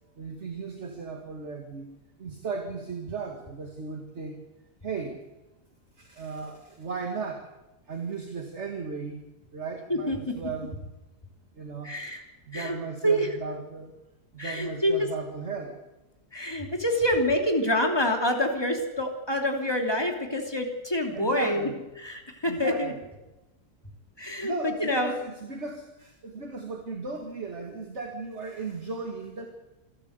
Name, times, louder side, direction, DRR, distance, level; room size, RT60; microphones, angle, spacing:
voice 1, 0.2-4.4 4.8-5.2 6.0-7.5 7.9-9.2 9.5-10.8 11.5-12.0 12.5-13.9 14.3-15.8 16.9-17.1 21.1-21.9 22.4-23.1 24.4-29.5, right 4 dB, 45° right, 3 dB, 2.3 m, -36 dB
voice 2, 9.9-10.3 11.8-12.2 12.5-12.8 13.0-13.3 14.4-14.9 16.3-21.7 22.0-22.9 24.2-24.5 24.8-25.1, equal, 15° left, 2 dB, 3.0 m, -26 dB
27.5 x 12.5 x 8.1 m, 1.0 s
omnidirectional pair, 1.6 m